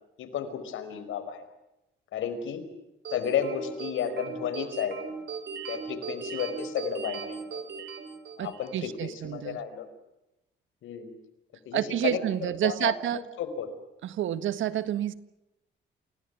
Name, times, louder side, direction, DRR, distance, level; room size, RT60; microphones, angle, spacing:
voice 1, 0.2-1.4 2.1-2.6 3.1-5.0 5.7-7.6 8.4-9.9 10.8-11.1 11.6-12.2 12.6-13.7, left 8 dB, 80° left, 8 dB, 5.1 m, -32 dB
sound 1, 3.0-8.8, right 5 dB, 60° right, 6.6 m, -38 dB
voice 2, 8.4-9.6 11.7-13.2 14.0-15.1, right 11 dB, 75° right, 13 dB, 1.6 m, -29 dB
29.0 x 18.0 x 9.5 m, 0.93 s
cardioid pair, 90°, 20 cm